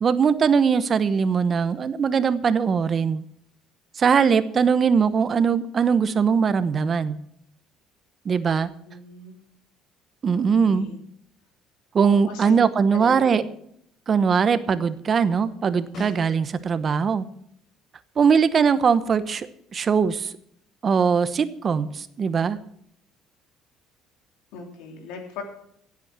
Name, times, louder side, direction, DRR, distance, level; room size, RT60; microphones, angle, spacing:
voice 1, 0.0-3.2 4.0-7.2 8.2-8.7 10.2-10.9 11.9-13.4 14.1-17.3 18.2-19.5 19.7-20.3 20.8-22.6, right 6 dB, 35° right, 14 dB, 0.9 m, -21 dB
voice 2, 8.9-9.4 10.3-11.0 12.1-12.6 12.9-13.4 24.5-25.4, left 5 dB, 85° left, 4 dB, 3.3 m, -39 dB
Snare drum, 15.9-16.9 21.3-21.4, left 1 dB, 50° left, 5.7 m, -38 dB
16.5 x 8.5 x 6.1 m, 0.71 s
cardioid pair, 115°, 0 cm